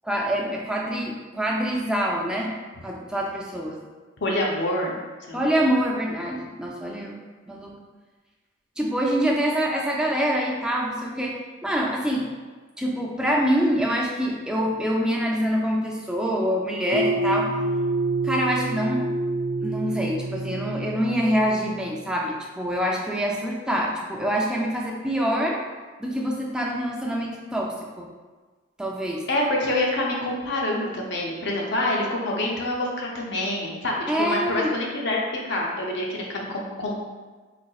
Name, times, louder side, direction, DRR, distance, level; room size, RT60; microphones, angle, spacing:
voice 1, 0.0-2.5 2.8-3.8 5.3-7.2 7.5-7.7 8.8-11.3 11.6-12.3 12.8-17.5 18.2-19.1 19.6-25.6 26.0-28.1 28.8-29.2 34.1-34.7, equal, 5° right, -2 dB, 0.4 m, -25 dB
voice 2, 4.2-5.0 5.3-5.5 29.3-35.2 35.4-36.9, left 1 dB, 60° left, -2 dB, 0.6 m, -26 dB
sound 1, 16.9-22.1, right 2 dB, 50° right, 0.8 m, -28 dB
4.1 x 2.7 x 2.3 m, 1.3 s
head